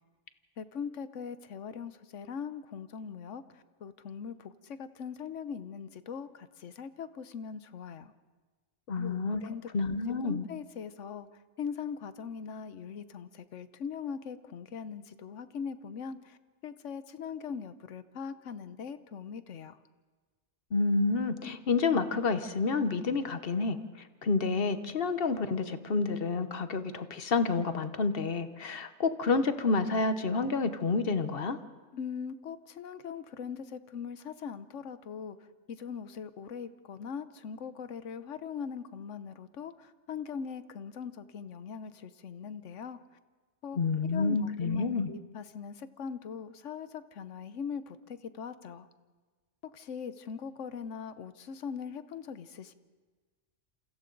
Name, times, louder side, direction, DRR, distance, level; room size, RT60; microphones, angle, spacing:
voice 1, 0.6-8.1 8.9-10.0 10.2-11.3 11.6-19.8 31.9-35.4 35.7-43.0 43.6-48.9 49.6-52.7, left 6 dB, 70° left, 12 dB, 1.2 m, -41 dB
voice 2, 8.9-9.4 9.7-10.4 20.7-23.8 24.2-31.6 43.8-45.1, left 4 dB, 50° left, 10 dB, 1.1 m, -29 dB
29.0 x 27.5 x 3.9 m, 1.4 s
omnidirectional pair, 1.4 m